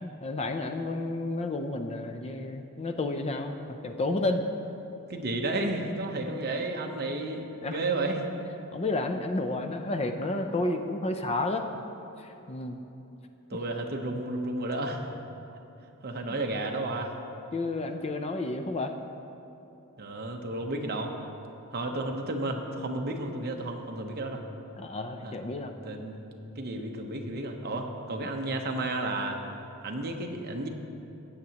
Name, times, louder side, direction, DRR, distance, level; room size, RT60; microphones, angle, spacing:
voice 1, 0.0-3.5 3.8-4.4 7.6-7.8 8.7-11.7 12.2-12.8 17.5-18.9 24.8-25.7, left 2 dB, 30° left, 6 dB, 0.5 m, -31 dB
voice 2, 5.1-8.3 13.5-15.1 16.0-17.2 20.0-21.1 21.7-24.4 25.2-25.4 25.8-26.2 26.6-29.4 29.8-30.7, right 2 dB, 45° right, 3 dB, 0.9 m, -32 dB
15.5 x 9.2 x 2.9 m, 2.9 s
head